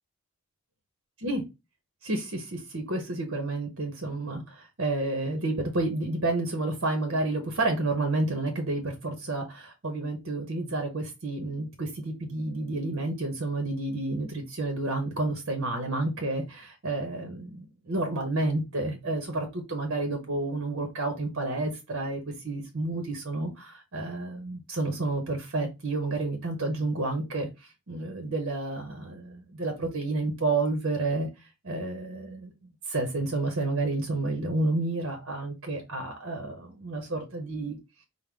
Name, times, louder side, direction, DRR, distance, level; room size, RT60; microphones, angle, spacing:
voice 1, 2.0-31.3 31.6-32.5 32.9-37.8, right 2 dB, 65° right, 4 dB, 0.9 m, -30 dB
4.6 x 2.1 x 3.6 m, 0.24 s
head